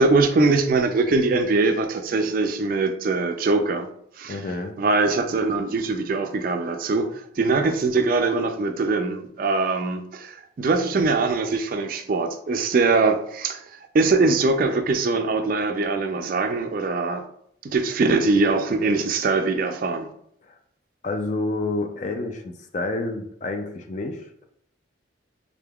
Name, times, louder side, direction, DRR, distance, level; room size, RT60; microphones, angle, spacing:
voice 1, 0.0-3.9 4.2-4.4 4.8-17.2 17.6-20.1, right 3 dB, 45° right, 7 dB, 0.3 m, -22 dB
voice 2, 4.3-4.8 20.4-20.6 21.0-24.5, left 2 dB, 40° left, 5 dB, 0.3 m, -29 dB
3.7 x 3.4 x 2.3 m, 0.70 s
head